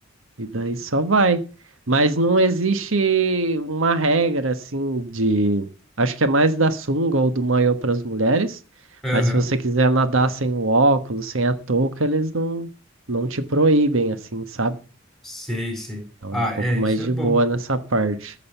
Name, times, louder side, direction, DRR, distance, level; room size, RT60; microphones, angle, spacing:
voice 1, 0.4-1.4 1.9-5.7 6.0-8.6 9.1-12.7 13.1-14.8 16.2-16.4 16.7-18.3, right 2 dB, 75° right, 1.3 m, -21 dB
voice 2, 9.0-9.5 15.2-16.0 16.3-17.4, equal, ahead, 4.5 m, -25 dB
14.5 x 6.6 x 8.0 m
head